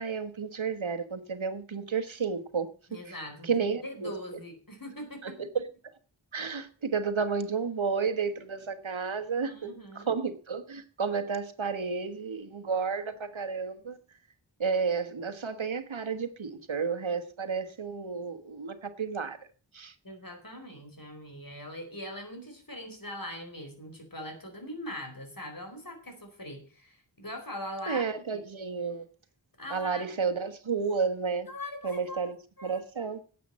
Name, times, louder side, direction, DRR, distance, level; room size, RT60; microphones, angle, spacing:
voice 1, 0.0-2.7 3.1-3.2 3.4-4.1 5.2-5.7 6.3-9.7 9.9-14.0 14.6-19.4 19.7-19.9 27.9-29.0 29.7-31.5 31.8-32.4 32.6-33.2, right 5 dB, 85° right, 1.4 m, -31 dB
voice 2, 2.9-5.4 9.4-10.1 20.0-28.4 29.6-30.1 31.5-32.3 32.6-33.1, left 1 dB, 45° left, 4.5 m, -42 dB
10.5 x 8.4 x 7.4 m
wide cardioid pair, 40°, 46 cm